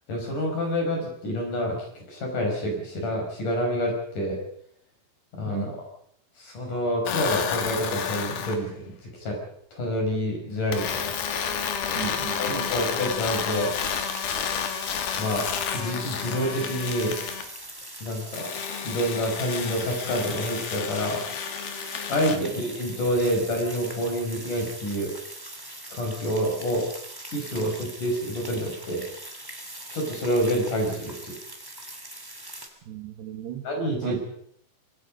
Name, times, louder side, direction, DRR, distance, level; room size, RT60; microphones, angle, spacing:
voice 1, 0.1-4.4 5.3-5.8 6.4-9.4 9.7-11.2 12.4-13.7 15.2-17.2 18.0-18.5 18.8-21.2 22.1-25.1 25.9-26.8 27.3-29.0 29.9-31.3 33.6-34.2, equal, 40° left, 2 dB, 6.5 m, -28 dB
voice 2, 5.5-5.8 11.9-12.7 22.3-22.6 32.9-33.7 34.0-34.2, right 11 dB, 65° right, 5 dB, 3.4 m, -36 dB
sound 1, 7.1-8.6 10.7-17.5 18.3-22.4, left 8 dB, 60° left, 3.1 m, -31 dB
sound 2, 13.5-32.7, right 1 dB, 10° right, 1.1 m, -41 dB
25.5 x 21.0 x 5.3 m, 0.67 s
omnidirectional pair, 5.5 m